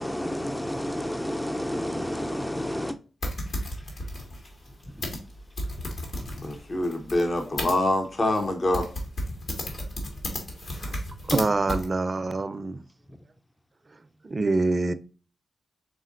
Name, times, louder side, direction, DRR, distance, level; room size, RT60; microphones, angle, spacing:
voice 1, 0.0-3.0 3.2-3.3, equal, 10° left, 0.5 m, -30 dB
sound 1, 3.2-7.7 8.3-8.5 8.7-11.4 11.7-11.9, left 1 dB, 65° left, 1.9 m, -33 dB
voice 2, 6.4-8.9, left 1 dB, 50° left, 0.9 m, -25 dB
voice 3, 11.3-12.8 14.2-14.9, right 3 dB, 45° right, 0.5 m, -25 dB
5.1 x 3.7 x 2.5 m
supercardioid pair, 45°, 0 cm